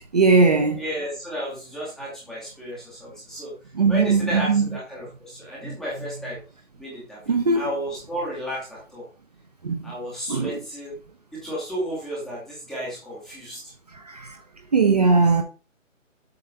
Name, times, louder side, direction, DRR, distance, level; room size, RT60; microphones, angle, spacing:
voice 1, 0.0-0.8 3.7-4.7 5.6-5.7 7.3-7.7 9.6-9.9 10.3-10.6 14.0-14.4 14.7-15.4, right 4 dB, 30° right, 0.6 m, -19 dB
voice 2, 0.7-3.5 3.9-6.4 6.8-9.1 9.8-11.0 11.3-13.6, equal, ahead, 0.7 m, -33 dB
7.6 x 3.4 x 5.6 m
figure-of-eight pair, 150°, 39 cm